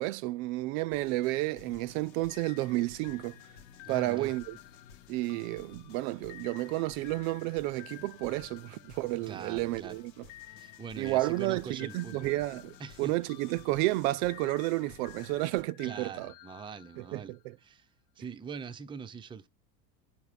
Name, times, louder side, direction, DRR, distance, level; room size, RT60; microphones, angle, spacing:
voice 1, 0.0-3.4 3.9-4.6 5.1-10.0 11.0-16.3 17.1-17.2, right 19 dB, 60° right, 0.6 m, -31 dB
sound 1, 0.9-15.6, left 6 dB, 90° left, 1.6 m, -55 dB
sound 2, 2.3-9.7 10.3-17.5, left 17 dB, 55° left, 1.0 m, -53 dB
voice 2, 3.8-4.3 9.3-10.0 10.5-12.4 12.8-13.2 15.8-17.9 18.2-19.5, right 6 dB, 10° right, 0.5 m, -43 dB
8.9 x 4.8 x 5.1 m
hypercardioid pair, 95°, 49 cm